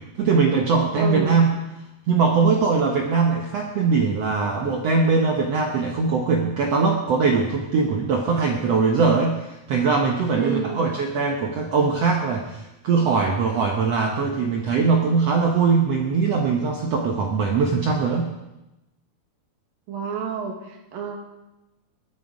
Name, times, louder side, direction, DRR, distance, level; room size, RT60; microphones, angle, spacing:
voice 1, 0.2-1.5 2.1-18.3, right 4 dB, 90° right, 2 dB, 1.4 m, -21 dB
voice 2, 0.9-1.4 10.3-10.8 19.9-21.2, right 7 dB, 65° right, 3 dB, 3.4 m, -29 dB
21.5 x 9.8 x 5.0 m, 0.96 s
omnidirectional pair, 4.6 m